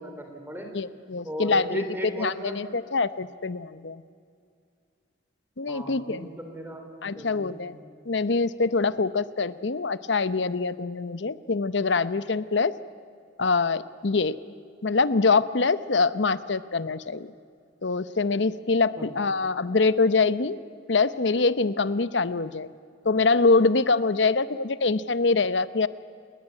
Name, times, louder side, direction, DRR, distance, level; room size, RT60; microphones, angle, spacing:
voice 1, 0.0-0.7 1.2-2.6 5.7-6.9 7.2-7.6 19.0-19.1, right 1 dB, 10° right, 3 dB, 3.8 m, -36 dB
voice 2, 0.7-1.8 2.2-4.0 5.6-6.3 7.0-7.8 8.1-12.7 13.4-14.3 14.8-17.3 17.8-20.6 20.9-22.7 23.0-25.9, left 4 dB, 70° left, 15 dB, 0.8 m, -24 dB
29.5 x 20.0 x 9.7 m, 2.2 s
head